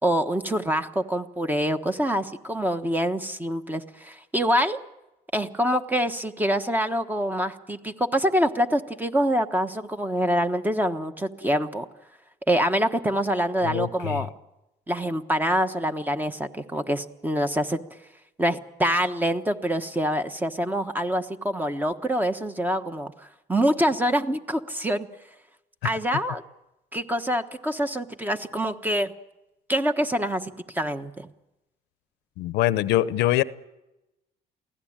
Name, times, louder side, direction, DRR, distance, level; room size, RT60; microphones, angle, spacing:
voice 1, 0.0-4.8 5.3-11.8 12.5-14.3 14.9-17.8 18.4-25.1 25.8-26.4 26.9-29.1 29.7-31.3, equal, 10° right, 8 dB, 1.2 m, -25 dB
voice 2, 13.6-14.3 32.4-33.4, left 15 dB, 85° left, 16 dB, 0.8 m, -23 dB
23.5 x 16.5 x 8.8 m, 0.96 s
cardioid pair, 110°, 17 cm